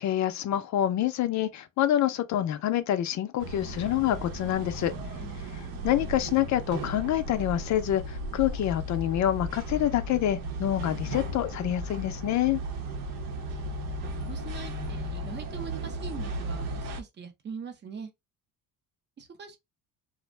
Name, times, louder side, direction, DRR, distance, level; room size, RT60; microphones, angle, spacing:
voice 1, 0.0-4.9 5.8-12.6, left 12 dB, 55° left, 0.4 m, -27 dB
sound 1, 3.4-17.0, right 1 dB, 80° right, 0.8 m, -35 dB
voice 2, 5.2-5.7 14.0-18.1 19.2-19.6, right 5 dB, 30° right, 0.6 m, -42 dB
2.5 x 2.1 x 3.0 m
cardioid pair, 130°, 34 cm